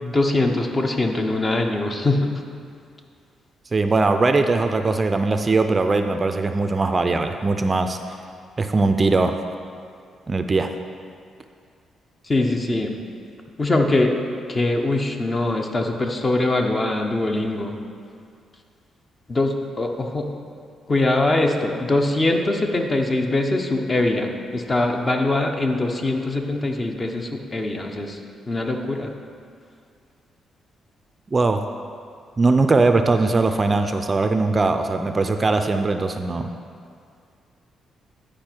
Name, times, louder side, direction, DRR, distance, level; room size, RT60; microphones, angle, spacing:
voice 1, 0.0-2.3 12.3-12.9 13.6-14.1 14.5-17.7 19.3-20.3 20.9-28.2 28.5-29.1, left 2 dB, 30° left, 3 dB, 0.9 m, -22 dB
voice 2, 3.7-8.0 8.6-9.4 10.3-10.7 31.3-31.6 32.4-36.5, right 3 dB, 30° right, 7 dB, 0.4 m, -20 dB
10.0 x 5.0 x 4.5 m, 2.3 s
cardioid pair, 80°, 0 cm